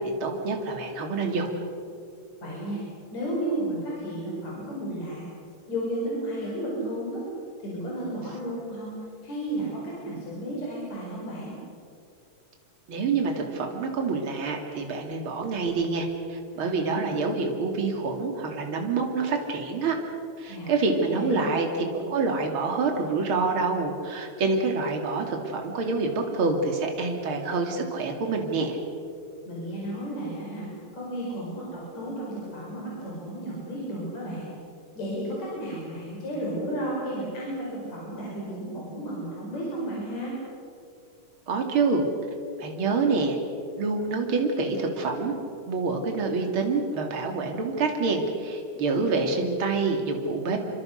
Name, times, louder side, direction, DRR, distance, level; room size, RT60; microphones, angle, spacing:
voice 1, 0.2-1.5 12.9-19.9 20.4-28.8 41.5-42.1 42.6-43.4 43.8-45.3 45.7-50.6, right 4 dB, 40° right, 3 dB, 3.3 m, -27 dB
voice 2, 2.4-2.8 3.1-5.2 5.7-7.2 7.6-9.0 9.2-11.6 20.5-21.5 29.5-30.7 30.9-34.5 34.9-40.3, right 1 dB, 55° left, -5 dB, 6.3 m, -33 dB
27.5 x 25.5 x 6.6 m, 2.4 s
omnidirectional pair, 3.8 m